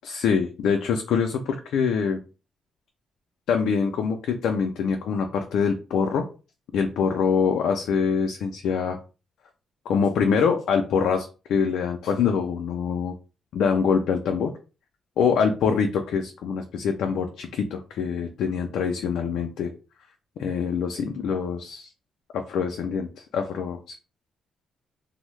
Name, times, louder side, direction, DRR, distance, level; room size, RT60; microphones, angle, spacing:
voice 1, 0.0-2.2 3.5-6.2 6.7-9.0 9.9-13.1 13.5-14.5 15.2-19.7 20.4-21.9 22.3-24.0, left 6 dB, 80° left, 4 dB, 0.4 m, -24 dB
2.6 x 2.0 x 3.1 m, 0.32 s
cardioid pair, 85°, 0 cm